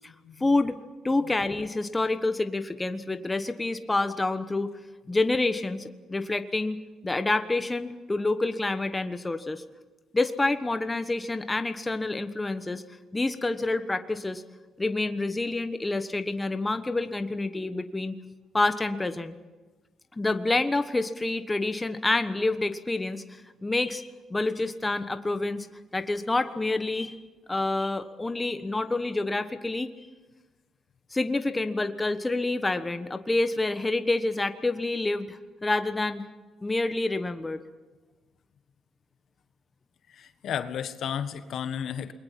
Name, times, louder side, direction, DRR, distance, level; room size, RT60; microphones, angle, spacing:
voice 1, 0.4-0.8 1.0-4.7 5.1-6.8 7.0-9.6 10.1-12.8 13.1-14.4 14.8-18.2 18.5-19.4 20.1-25.7 25.9-27.2 27.5-29.9 31.1-36.2 36.6-37.6, left 2 dB, 15° left, 9 dB, 1.2 m, -28 dB
voice 2, 40.1-42.1, left 8 dB, 70° left, 10 dB, 1.4 m, -33 dB
28.5 x 21.5 x 6.0 m, 1.3 s
cardioid pair, 90°, 0 cm